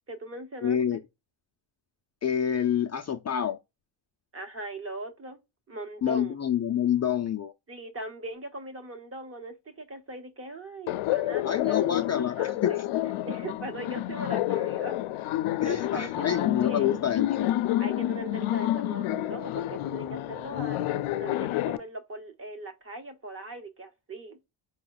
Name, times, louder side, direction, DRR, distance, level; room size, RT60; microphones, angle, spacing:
voice 1, 0.1-1.0 4.3-5.4 5.7-6.5 7.7-11.8 12.4-12.8 13.2-15.0 15.6-17.0 17.8-24.4, right 1 dB, 30° right, 0.9 m, -40 dB
voice 2, 0.6-1.0 2.2-3.6 6.0-7.5 11.4-12.7 15.6-17.5, left 9 dB, 35° left, 0.4 m, -27 dB
Laughter, 10.9-21.8, left 14 dB, 85° left, 0.6 m, -29 dB
5.0 x 2.2 x 3.9 m
wide cardioid pair, 160°, 49 cm